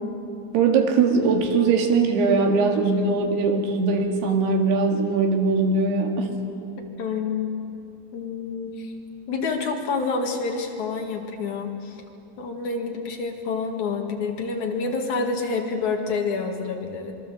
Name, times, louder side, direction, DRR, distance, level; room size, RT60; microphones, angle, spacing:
voice 1, 0.5-6.4, right 4 dB, 70° right, 3 dB, 4.0 m, -21 dB
voice 2, 7.0-7.5 8.1-8.9 9.3-12.0 12.4-17.1, left 4 dB, 50° left, 2 dB, 2.9 m, -28 dB
26.0 x 22.5 x 7.7 m, 2.7 s
omnidirectional pair, 4.9 m